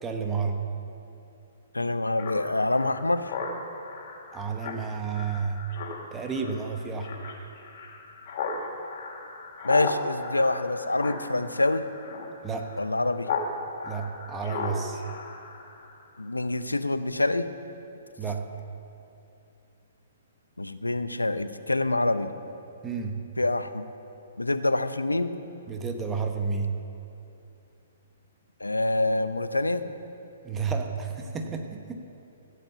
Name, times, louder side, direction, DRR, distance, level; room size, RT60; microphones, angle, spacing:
voice 1, 0.0-0.6 4.3-5.6 6.1-7.2 12.4-12.7 13.8-15.0 18.2-18.5 22.8-23.3 25.7-26.7 30.4-32.0, right 5 dB, 15° right, 4 dB, 1.2 m, -31 dB
voice 2, 1.7-3.3 9.6-11.9 12.8-13.3 16.2-17.5 20.6-22.3 23.4-23.8 24.4-25.3 28.6-29.8, left 2 dB, 85° left, 11 dB, 0.7 m, -26 dB
Speech synthesizer, 2.2-13.5 13.8-16.0, left 4 dB, 50° left, 2.4 m, -36 dB
15.5 x 8.1 x 7.1 m, 2.8 s
figure-of-eight pair, 120°, 0 cm